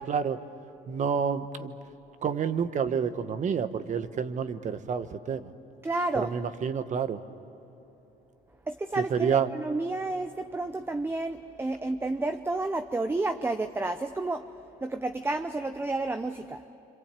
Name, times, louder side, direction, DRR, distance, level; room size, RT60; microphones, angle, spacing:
voice 1, 0.1-0.4 0.9-1.7 2.2-5.5 6.1-7.2 8.9-9.5, right 7 dB, 45° right, 11 dB, 1.3 m, -29 dB
voice 2, 5.8-6.3 8.7-14.5 14.8-16.6, right 2 dB, 15° right, 8 dB, 0.8 m, -31 dB
27.0 x 26.5 x 8.4 m, 3.0 s
cardioid pair, 110°, 17 cm